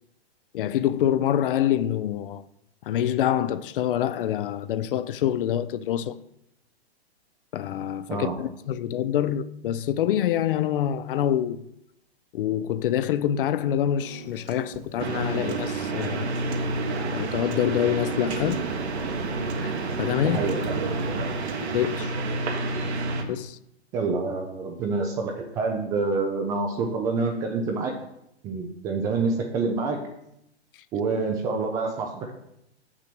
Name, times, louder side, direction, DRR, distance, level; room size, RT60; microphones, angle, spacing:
voice 1, 0.5-2.5 2.8-6.2 7.5-11.6 12.3-16.3 17.1-18.7 19.6-19.7 20.0-20.4 21.1-21.2 21.6-22.1 23.3-23.6, left 11 dB, 55° left, 0.5 m, -26 dB
Piano, 14.0-22.0, right 6 dB, 30° right, 0.9 m, -41 dB
sound 1, 15.0-23.2, right 3 dB, 75° right, 1.5 m, -29 dB
voice 2, 20.2-20.8 23.9-27.9 28.4-30.0 30.9-32.3, right 4 dB, 10° right, 0.3 m, -27 dB
6.4 x 6.1 x 6.0 m
hypercardioid pair, 135°, 33 cm